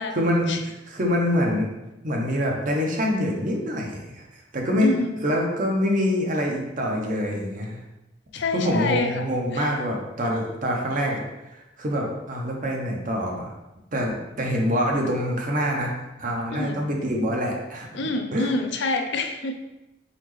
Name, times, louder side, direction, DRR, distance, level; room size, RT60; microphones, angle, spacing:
voice 1, 0.0-1.7 2.0-4.9 5.2-7.8 8.5-11.3 11.5-13.5 13.9-15.9 16.2-17.9 18.3-18.5, equal, 45° right, 0 dB, 0.8 m, -25 dB
voice 2, 4.8-5.2 8.3-9.3 9.5-9.7 16.5-16.8 18.0-19.5, left 2 dB, 70° left, 5 dB, 0.5 m, -27 dB
4.2 x 4.0 x 3.1 m, 0.99 s
head